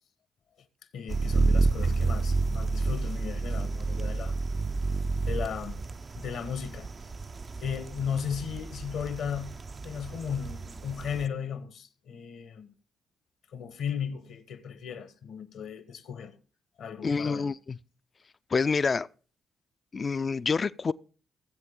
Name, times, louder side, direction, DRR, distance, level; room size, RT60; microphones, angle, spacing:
voice 1, 0.9-4.3 5.2-5.8 6.2-6.9 7.6-12.7 13.5-16.3 16.8-17.5, left 7 dB, 75° left, 1.1 m, -36 dB
sound 1, 1.1-11.3, right 3 dB, 40° right, 0.5 m, -30 dB
voice 2, 17.0-17.8 18.5-19.1 19.9-20.9, left 4 dB, 45° left, 0.4 m, -27 dB
17.0 x 7.6 x 3.7 m
hypercardioid pair, 45°, 0 cm